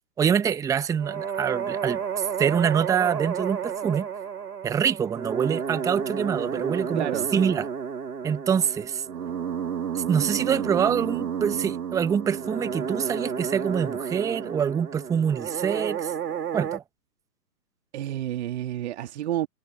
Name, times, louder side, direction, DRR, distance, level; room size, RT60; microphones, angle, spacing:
voice 1, 0.2-4.1 4.6-7.1 7.3-7.7 8.2-9.0 9.9-16.1 16.5-16.8, right 7 dB, 5° right, 1.2 m, -25 dB
sound 1, 1.0-16.8, right 7 dB, 65° right, 1.7 m, -31 dB
voice 2, 6.9-7.3 17.9-19.5, right 12 dB, 40° right, 2.2 m, -29 dB
figure-of-eight pair, 130°, 50 cm